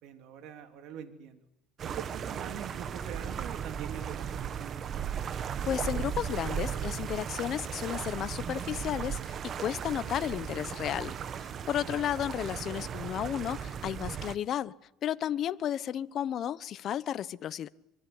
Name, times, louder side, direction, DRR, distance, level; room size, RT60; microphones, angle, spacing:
voice 1, 0.0-1.5 1.8-5.0 12.0-12.1, right 9 dB, 65° right, 3.2 m, -44 dB
sound 1, 1.8-14.3, right 8 dB, 40° right, 1.2 m, -36 dB
voice 2, 5.6-14.7 15.0-17.7, left 10 dB, 50° left, 1.0 m, -33 dB
25.5 x 24.5 x 9.6 m
cardioid pair, 120°, 0 cm